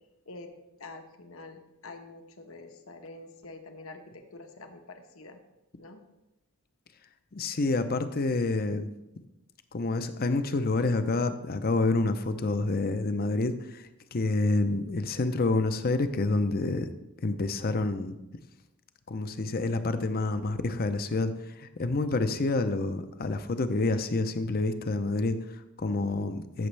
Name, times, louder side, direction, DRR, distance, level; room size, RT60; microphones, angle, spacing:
voice 1, 0.3-5.4 5.8-6.0 20.1-20.5, left 2 dB, 70° left, 5 dB, 1.1 m, -46 dB
voice 2, 7.3-8.9 9.7-16.9 17.2-18.1 19.1-26.7, left 2 dB, 45° left, 10 dB, 0.6 m, -28 dB
14.0 x 7.1 x 3.3 m, 0.94 s
head